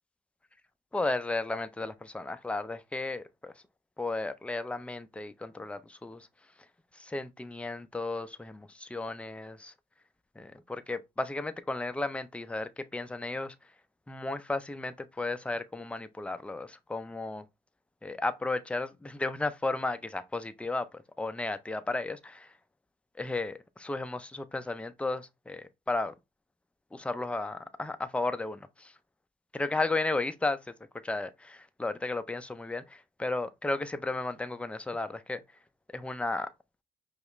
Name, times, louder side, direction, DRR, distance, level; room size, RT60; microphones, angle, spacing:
voice 1, 0.9-3.5 4.0-6.3 6.9-9.7 10.4-13.5 14.1-17.4 18.0-22.5 23.2-26.1 26.9-28.9 29.5-30.7 31.0-35.4 35.9-36.5, left 2 dB, 5° left, 0.4 m, -34 dB
4.9 x 2.4 x 3.0 m
cardioid pair, 95°, 21 cm